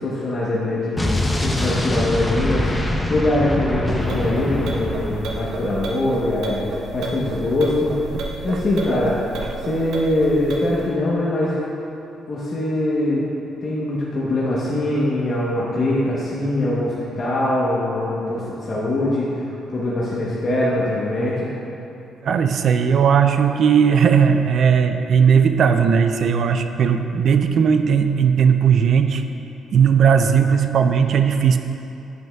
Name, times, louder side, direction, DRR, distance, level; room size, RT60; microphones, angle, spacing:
voice 1, 0.0-6.6 6.9-7.9 8.4-9.2 9.6-11.6 12.3-13.2 13.6-21.5, left 1 dB, 45° left, -7 dB, 0.9 m, -22 dB
Explosion, 1.0-5.7, left 1 dB, 15° left, 0.6 m, -24 dB
sound 1, 4.0-10.9, right 3 dB, 80° right, 0.7 m, -32 dB
voice 2, 22.2-29.2 29.7-31.6, right 7 dB, 60° right, 8 dB, 0.3 m, -17 dB
9.0 x 5.4 x 2.3 m, 2.8 s
cardioid pair, 90°, 0 cm